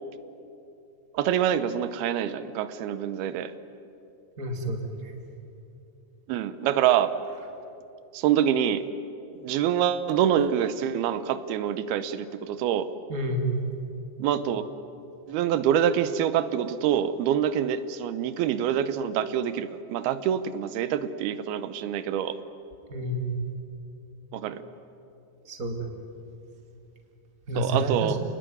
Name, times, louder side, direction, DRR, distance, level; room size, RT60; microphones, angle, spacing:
voice 1, 1.1-3.5 6.3-7.1 8.1-8.9 9.4-12.9 14.2-14.6 15.3-22.4 24.3-24.6 27.6-28.2, right 9 dB, 90° right, 12 dB, 2.9 m, -26 dB
voice 2, 4.4-5.1 13.1-13.4 22.9-23.3 25.4-25.9 27.5-28.1, equal, 25° right, 3 dB, 2.4 m, -29 dB
29.5 x 20.0 x 9.4 m, 2.8 s
omnidirectional pair, 4.3 m